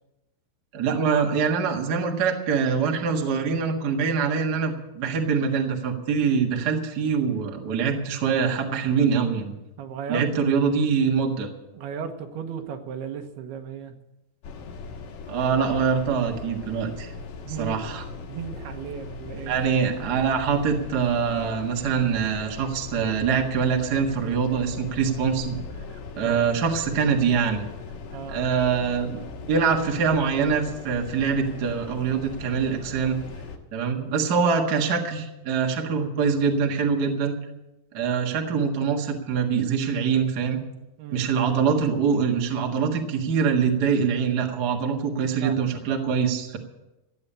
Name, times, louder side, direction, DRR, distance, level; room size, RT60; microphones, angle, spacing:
voice 1, 0.7-9.5 10.1-11.5 15.3-17.1 17.6-18.0 19.5-25.6 26.2-27.6 28.3-29.2 29.5-33.2 33.7-37.3 37.9-40.6 41.1-46.6, right 6 dB, 65° right, 2 dB, 1.0 m, -24 dB
voice 2, 9.8-10.3 11.7-14.0 17.5-19.6 26.2-26.5 28.1-28.6 41.0-41.3 45.4-45.8 46.1-46.2, right 7 dB, 80° right, 6 dB, 3.1 m, -36 dB
sound 1, 14.4-33.6, left 4 dB, 85° left, 3.6 m, -39 dB
15.0 x 8.5 x 8.6 m, 0.96 s
omnidirectional pair, 4.6 m